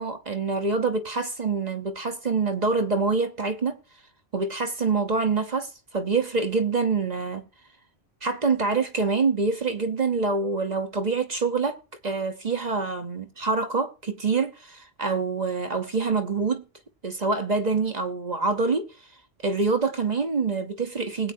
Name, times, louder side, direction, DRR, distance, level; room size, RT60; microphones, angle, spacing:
voice 1, 0.0-3.8 4.3-7.4 8.2-11.8 12.0-16.6 17.0-18.8 19.4-21.3, right 4 dB, 40° right, 0.9 m, -26 dB
20.0 x 8.6 x 2.7 m
omnidirectional pair, 1.3 m